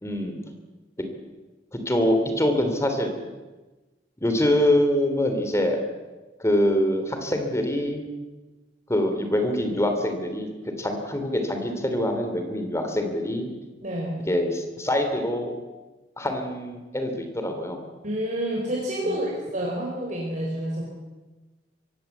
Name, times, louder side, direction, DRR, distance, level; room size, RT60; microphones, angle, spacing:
voice 1, 0.0-0.4 1.7-3.1 4.2-5.8 6.4-8.1 8.9-13.5 14.3-15.5 16.2-17.9 19.0-19.2, left 1 dB, 15° left, 5 dB, 3.2 m, -24 dB
voice 2, 13.8-14.3 18.0-20.8, right 1 dB, 45° right, -3 dB, 4.4 m, -28 dB
24.0 x 16.0 x 8.1 m, 1.2 s
head